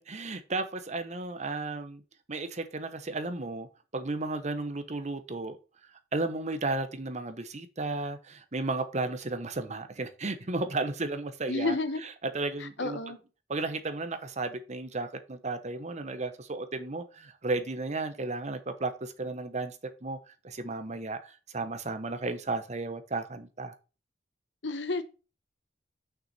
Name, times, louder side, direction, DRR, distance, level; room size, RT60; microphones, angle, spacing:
voice 1, 0.1-2.0 2.3-3.7 3.9-5.6 6.1-11.8 12.3-13.0 13.5-20.2 20.4-23.7, right 3 dB, 40° right, 1.0 m, -34 dB
voice 2, 11.5-12.0 12.6-13.2 24.6-25.0, left 3 dB, 75° left, 1.1 m, -31 dB
6.3 x 6.0 x 4.2 m
head